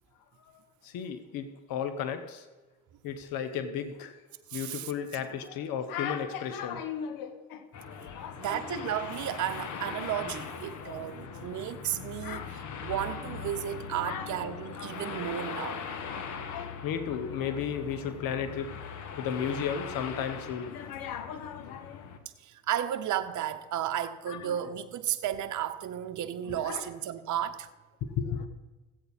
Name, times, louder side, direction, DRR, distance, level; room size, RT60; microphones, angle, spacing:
voice 1, 0.8-2.4 3.0-4.2 4.5-7.7 8.1-8.8 11.0-11.2 12.2-12.8 14.0-14.3 16.5-22.1 24.3-24.5 26.5-26.9 28.0-28.5, left 8 dB, 70° left, 0.9 m, -35 dB
voice 2, 4.5-4.9 6.7-6.8 8.4-15.8 22.4-27.7, right 11 dB, 55° right, 0.9 m, -33 dB
sound 1, 7.7-22.2, left 6 dB, 55° left, 1.2 m, -40 dB
15.0 x 8.2 x 4.1 m
supercardioid pair, 70°, 36 cm